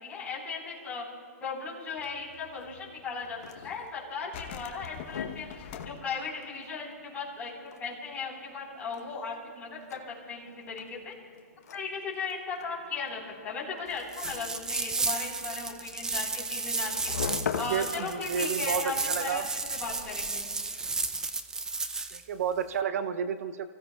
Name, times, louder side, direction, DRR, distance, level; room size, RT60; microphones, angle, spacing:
voice 1, 0.0-1.0 1.4-5.5 5.8-11.1 11.7-17.1 17.6-20.5, left 4 dB, 15° left, -4 dB, 4.4 m, -37 dB
sound 1, 1.8-4.0 4.3-7.6 7.8-8.0 8.4-8.7 9.0-12.4 13.2-13.3 14.3-14.6 15.1-15.8 16.3-16.4 17.7-17.8 18.8-20.4, left 8 dB, 40° left, 1.1 m, -49 dB
sound 2, 3.2-19.7, left 6 dB, 85° left, 1.0 m, -43 dB
sound 3, 14.1-22.2, right 3 dB, 5° right, 0.5 m, -33 dB
voice 2, 17.5-19.5 22.1-23.7, right 7 dB, 65° right, 12 dB, 0.6 m, -31 dB
30.0 x 15.5 x 2.4 m, 2.2 s
hypercardioid pair, 150°, 9 cm